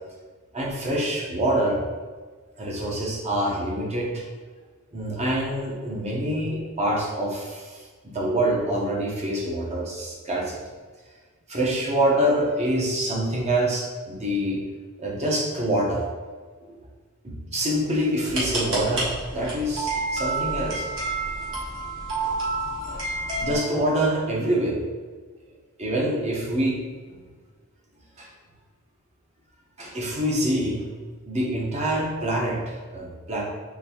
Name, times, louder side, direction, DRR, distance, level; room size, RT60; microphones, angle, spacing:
voice 1, 0.5-1.8 2.6-4.2 4.9-10.6 11.5-14.6 15.0-16.0 17.2-20.9 21.5-21.6 22.9-23.0 23.4-24.8 25.8-26.8 28.2-28.3 29.8-30.8 31.3-33.4, right 1 dB, 30° right, -3 dB, 0.7 m, -26 dB
sound 1, 18.2-23.6, right 2 dB, 60° right, 1.2 m, -29 dB
3.9 x 3.1 x 2.8 m, 1.5 s
head